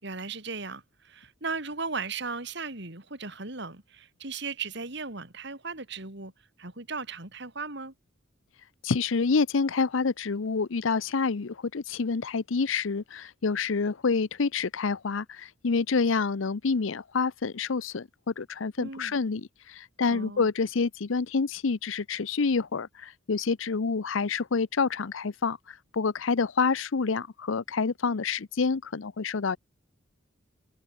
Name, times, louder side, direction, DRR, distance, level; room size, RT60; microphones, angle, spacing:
voice 1, 0.0-6.3 6.6-7.9 18.8-19.2 20.1-20.5, right 4 dB, 60° right, 3.5 m, -37 dB
voice 2, 8.8-25.6 25.9-29.6, left 4 dB, 80° left, 0.7 m, -28 dB
head